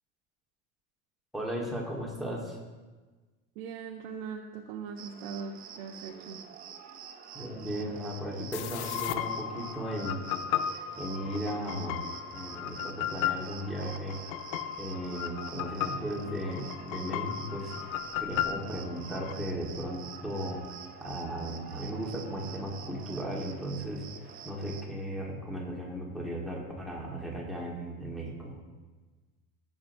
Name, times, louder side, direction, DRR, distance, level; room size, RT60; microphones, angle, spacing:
voice 1, 1.3-2.6 7.3-10.3 11.0-12.0 12.3-14.2 14.8-17.7 18.2-20.6 21.0-24.0 24.4-28.6, equal, ahead, -4 dB, 1.3 m, -36 dB
voice 2, 3.6-6.4, right 6 dB, 60° right, 2 dB, 0.7 m, -40 dB
Cricket, 5.0-24.8, right 7 dB, 25° right, 0.5 m, -47 dB
sound 1, 8.5-19.3, left 10 dB, 80° left, 0.7 m, -35 dB
14.5 x 7.6 x 2.6 m, 1.3 s
cardioid pair, 180°, 33 cm